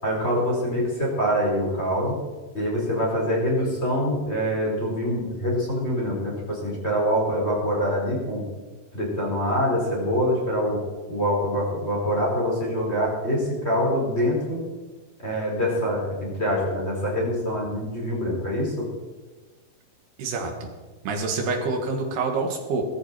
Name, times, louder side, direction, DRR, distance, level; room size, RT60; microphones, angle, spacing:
voice 1, 0.0-2.2 2.5-8.5 8.9-10.8 11.1-14.7 15.2-18.9, equal, 15° left, -4 dB, 4.7 m, -25 dB
voice 2, 20.2-20.7 21.0-22.8, right 4 dB, 90° right, 3 dB, 4.0 m, -27 dB
19.0 x 14.0 x 4.5 m, 1.3 s
omnidirectional pair, 4.4 m